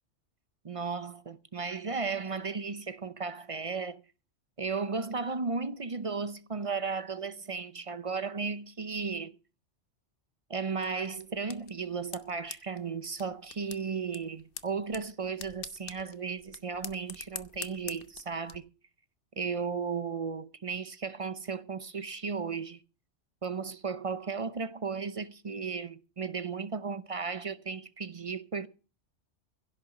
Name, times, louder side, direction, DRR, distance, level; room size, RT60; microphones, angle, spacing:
voice 1, 0.6-4.0 4.6-9.3 10.5-18.7 19.4-22.8 23.4-28.7, right 5 dB, 35° right, 0.7 m, -35 dB
sound 1, 10.8-18.6, left 6 dB, 55° left, 1.1 m, -47 dB
16.0 x 6.6 x 8.0 m
omnidirectional pair, 1.2 m